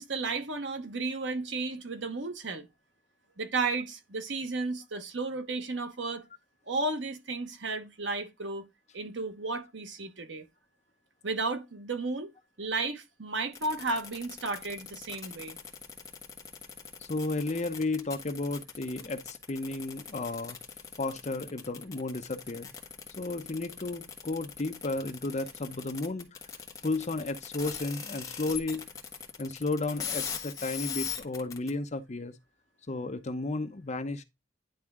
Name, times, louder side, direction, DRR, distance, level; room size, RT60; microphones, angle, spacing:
voice 1, 0.0-2.7 3.4-6.2 6.7-8.7 8.9-10.4 11.2-12.3 12.6-15.6, right 3 dB, 65° right, 1.1 m, -33 dB
sound 1, 13.5-31.7, left 7 dB, 15° left, 1.3 m, -40 dB
voice 2, 17.0-20.6 21.0-22.7 23.2-26.4 26.8-28.9 29.4-32.3 32.9-34.2, left 2 dB, 35° left, 0.7 m, -33 dB
10.5 x 3.6 x 3.6 m
head